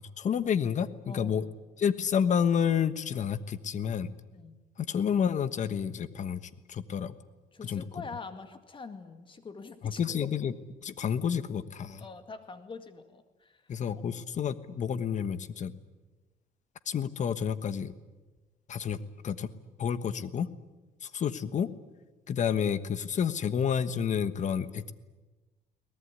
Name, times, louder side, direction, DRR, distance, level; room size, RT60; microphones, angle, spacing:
voice 1, 0.0-1.4 1.8-4.1 4.8-6.4 6.7-7.1 7.6-8.0 9.8-10.5 10.8-12.0 13.7-15.7 16.9-17.9 18.7-19.0 19.2-19.5 19.8-20.5 21.0-21.7 22.3-24.9, left 8 dB, 45° left, 13 dB, 1.3 m, -29 dB
voice 2, 1.1-1.5 4.3-4.6 7.5-10.6 12.0-13.8 14.1-14.5, left 4 dB, 30° left, 9 dB, 2.1 m, -45 dB
22.5 x 19.0 x 9.9 m, 1.2 s
cardioid pair, 110°, 17 cm